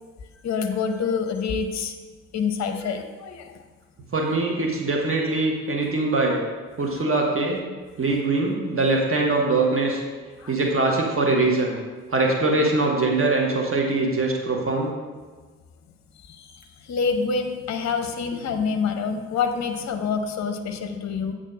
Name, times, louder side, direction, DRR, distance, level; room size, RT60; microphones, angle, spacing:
voice 1, 0.4-1.9 2.3-3.4 10.4-10.6 16.9-21.3, left 5 dB, 40° left, 6 dB, 0.8 m, -26 dB
voice 2, 4.1-6.4 6.8-7.6 8.0-10.0 10.5-11.8 12.1-14.9, right 2 dB, 30° right, 0 dB, 1.2 m, -22 dB
8.4 x 3.7 x 5.1 m, 1.4 s
figure-of-eight pair, 40°, 42 cm